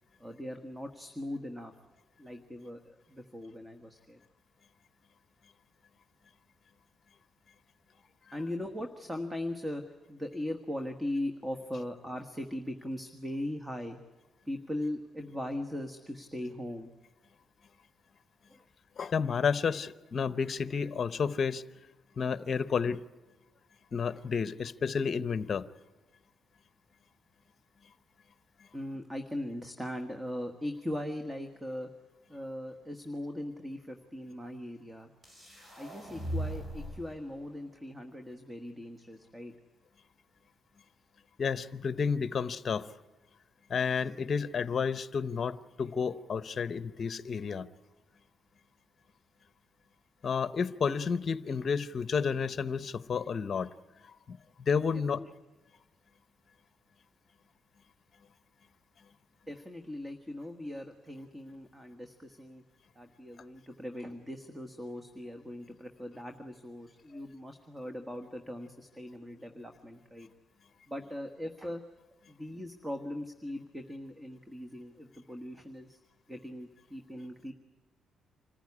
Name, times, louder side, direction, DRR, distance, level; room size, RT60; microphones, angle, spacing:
voice 1, 0.2-1.7 2.2-4.2 8.3-9.8 10.1-14.0 14.4-16.9 18.5-18.7 28.7-31.9 32.3-35.1 35.8-39.5 55.2-55.3 59.5-62.6 62.9-70.3 70.9-71.8 72.3-76.0 76.3-77.5, left 1 dB, 10° right, 6 dB, 1.5 m, -39 dB
voice 2, 19.0-21.6 22.2-23.0 23.9-25.6 41.4-42.8 43.7-47.7 50.2-53.7 54.1-55.2, left 6 dB, 45° left, 14 dB, 0.8 m, -31 dB
sound 1, 35.2-37.2, right 1 dB, 30° right, 4.3 m, -38 dB
26.0 x 14.5 x 9.8 m, 1.2 s
cardioid pair, 90°, 0 cm